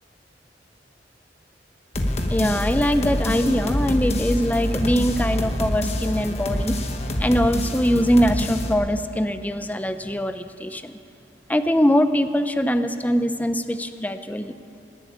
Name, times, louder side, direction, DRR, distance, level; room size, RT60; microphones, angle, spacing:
sound 1, 1.9-8.7, left 1 dB, 40° left, 1.2 m, -26 dB
voice 1, 2.3-6.8 7.2-10.9 11.5-14.5, equal, 10° left, 10 dB, 0.5 m, -22 dB
19.0 x 7.9 x 8.5 m, 2.5 s
head